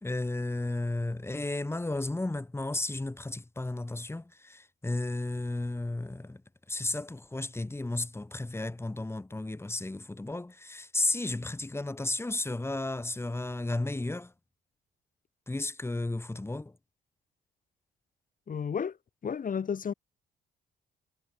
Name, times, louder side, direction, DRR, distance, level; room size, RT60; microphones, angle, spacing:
voice 1, 0.0-6.4 6.7-14.3 15.5-16.8, left 2 dB, 10° left, 2.2 m, -33 dB
voice 2, 18.5-19.0 19.2-19.9, left 7 dB, 45° left, 1.7 m, -32 dB
cardioid pair, 90°, 20 cm